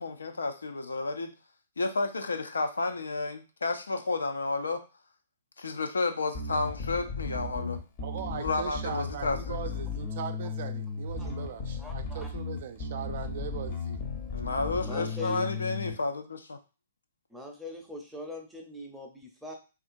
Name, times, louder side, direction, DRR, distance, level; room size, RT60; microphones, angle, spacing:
voice 1, 0.0-1.3 1.8-4.8 5.6-7.8 8.3-9.6 14.3-16.6, left 3 dB, 80° left, 6 dB, 0.4 m, -31 dB
Bass guitar, 6.3-15.9, left 4 dB, 40° left, 0.7 m, -35 dB
voice 2, 8.0-14.0, right 8 dB, 55° right, 7 dB, 0.4 m, -39 dB
voice 3, 11.8-12.3 14.8-15.5 17.3-19.5, left 1 dB, ahead, 0 dB, 0.6 m, -41 dB
2.7 x 2.4 x 2.5 m, 0.32 s
figure-of-eight pair, 115°, 0 cm